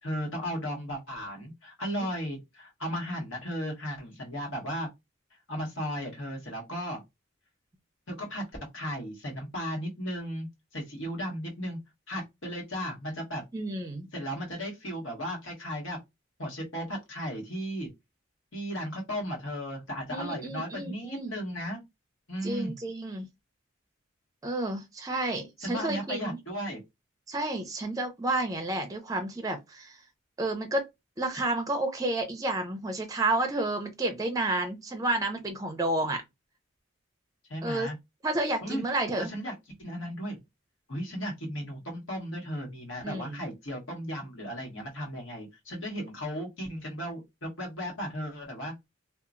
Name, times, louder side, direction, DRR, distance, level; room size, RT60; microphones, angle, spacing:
voice 1, 0.0-4.9 5.5-7.0 8.1-8.4 8.7-10.5 10.7-11.8 12.1-13.4 14.1-16.0 16.4-17.9 18.5-21.8 22.3-22.7 25.6-26.8 37.5-37.9 38.6-38.9 39.2-40.4 40.9-48.7, equal, 75° left, 1.4 m, -35 dB
voice 2, 13.5-14.1 20.1-21.4 22.4-23.2 24.4-26.4 27.3-30.0 30.4-30.9 31.2-36.2 37.6-37.9 38.2-39.3 43.0-43.4, right 2 dB, 15° right, 0.4 m, -30 dB
2.8 x 2.3 x 2.5 m
head